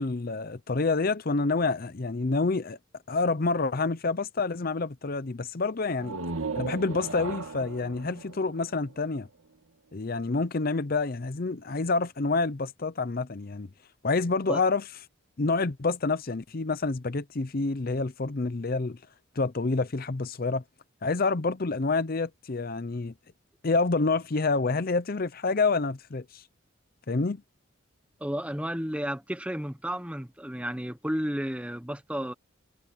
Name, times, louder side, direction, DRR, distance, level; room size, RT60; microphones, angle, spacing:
voice 1, 0.0-2.8 3.1-6.2 6.6-9.3 9.9-13.7 14.0-14.8 15.4-19.0 19.4-20.6 21.0-23.1 23.6-26.4 27.1-27.4, left 3 dB, 45° left, 0.6 m, -28 dB
sound 1, 5.9-9.6, right 4 dB, 85° right, 2.0 m, -37 dB
voice 2, 28.2-32.3, equal, 5° right, 1.2 m, -32 dB
head